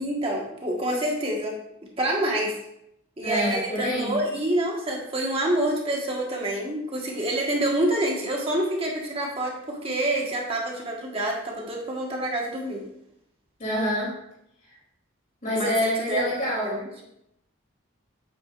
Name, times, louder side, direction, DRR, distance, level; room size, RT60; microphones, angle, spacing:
voice 1, 0.0-1.5 2.0-2.5 3.2-12.8 15.5-15.7 16.1-16.2 16.6-16.8, right 1 dB, 25° right, -1 dB, 1.6 m, -27 dB
voice 2, 3.2-4.1 13.6-14.1 15.4-17.0, equal, 40° left, -5 dB, 3.3 m, -27 dB
9.0 x 8.4 x 2.6 m, 0.78 s
head